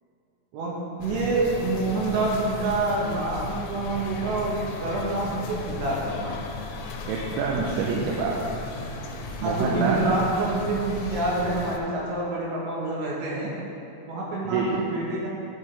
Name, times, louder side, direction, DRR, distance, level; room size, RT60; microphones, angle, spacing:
voice 1, 0.5-4.6 4.8-6.4 9.4-13.5 14.1-15.3, right 2 dB, 70° right, -4 dB, 3.3 m, -27 dB
sound 1, 1.0-11.8, left 3 dB, 90° left, 3.5 m, -36 dB
voice 2, 7.1-8.4 9.4-10.0 14.4-14.8, right 5 dB, 85° right, -2 dB, 3.5 m, -26 dB
12.0 x 9.0 x 3.4 m, 2.9 s
omnidirectional pair, 5.9 m